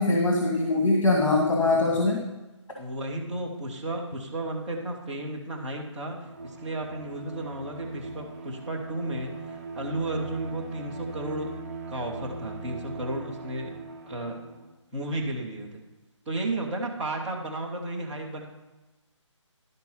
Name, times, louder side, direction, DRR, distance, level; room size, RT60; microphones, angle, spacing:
voice 1, 0.0-2.2, left 2 dB, 85° left, -1 dB, 2.0 m, -22 dB
voice 2, 1.7-2.1 2.8-6.2 6.4-11.5 11.9-13.8 14.1-14.4 14.9-15.8 16.3-18.5, right 1 dB, 5° right, -8 dB, 0.5 m, -33 dB
Bowed string instrument, 6.2-14.7, right 3 dB, 30° right, 0.9 m, -40 dB
12.0 x 4.6 x 5.4 m, 1.1 s
hypercardioid pair, 170°, 16 cm